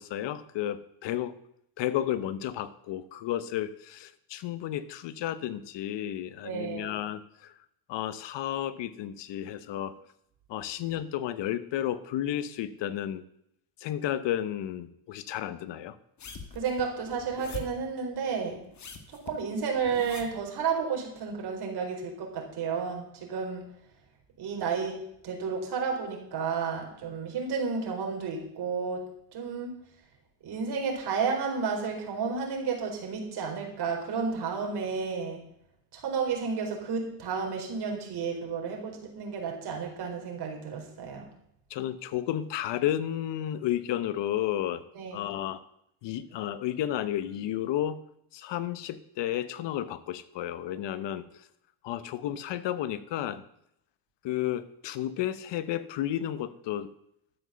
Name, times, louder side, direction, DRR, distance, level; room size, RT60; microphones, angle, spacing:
voice 1, 0.0-1.4 1.8-7.5 7.9-10.0 10.5-13.2 13.8-16.0 41.7-44.8 45.1-45.6 46.0-48.0 48.3-51.4 51.8-53.4 54.2-56.9, left 12 dB, 60° left, 14 dB, 1.0 m, -32 dB
voice 2, 6.4-6.9 16.5-18.6 19.1-23.6 24.4-24.9 25.2-29.0 29.3-29.7 30.4-35.4 35.9-41.3 44.9-45.3, right 5 dB, 50° right, 1 dB, 4.3 m, -32 dB
sound 1, 16.2-17.9 18.6-20.5 21.2-21.3, left 4 dB, 35° left, 1.8 m, -43 dB
12.5 x 7.6 x 6.9 m, 0.76 s
cardioid pair, 115°, 49 cm